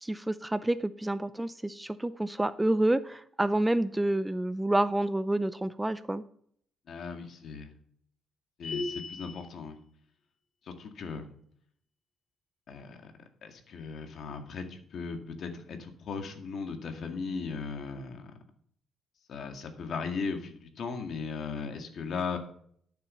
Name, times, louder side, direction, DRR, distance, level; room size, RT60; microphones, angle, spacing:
voice 1, 0.0-6.2, right 1 dB, 10° right, 14 dB, 0.5 m, -28 dB
voice 2, 6.9-7.7 8.6-9.8 10.6-11.3 12.7-13.1 13.4-18.3 19.3-22.4, left 5 dB, 60° left, 5 dB, 2.0 m, -37 dB
sound 1, 8.6-9.5, left 3 dB, 40° left, 1.5 m, -36 dB
12.0 x 7.0 x 5.6 m, 0.64 s
cardioid pair, 90°, 0 cm